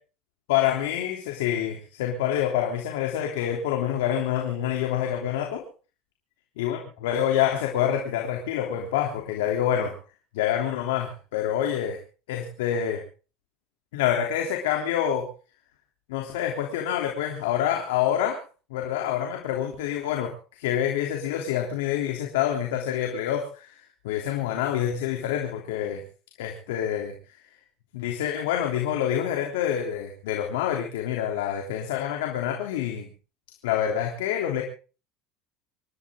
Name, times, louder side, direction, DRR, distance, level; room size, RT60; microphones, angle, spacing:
voice 1, 0.5-5.6 6.6-9.9 10.3-12.0 12.3-13.0 13.9-15.3 16.1-18.4 18.7-23.8 24.0-26.0 26.4-27.1 27.9-33.1 33.6-34.6, left 10 dB, 90° left, 1 dB, 3.3 m, -27 dB
27.0 x 12.0 x 3.8 m, 0.37 s
supercardioid pair, 115°, 0 cm